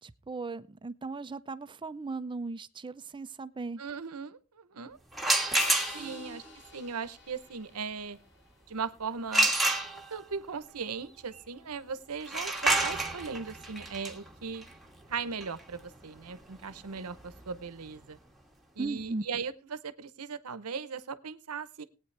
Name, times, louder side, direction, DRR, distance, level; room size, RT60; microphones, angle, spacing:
voice 1, 0.0-3.8 5.9-6.6 18.8-19.2, right 3 dB, 20° right, 14 dB, 0.5 m, -38 dB
voice 2, 3.8-5.0 5.9-6.4 6.7-8.2 8.7-9.6 9.9-14.6 15.1-18.2 18.8-21.8, right 5 dB, 80° right, 13 dB, 0.9 m, -38 dB
sound 1, 5.1-6.3 9.3-10.3 12.2-17.9, right 2 dB, ahead, 1.5 m, -30 dB
sound 2, 5.6-9.1, left 6 dB, 55° left, 1.6 m, -48 dB
18.5 x 9.1 x 3.3 m, 0.32 s
head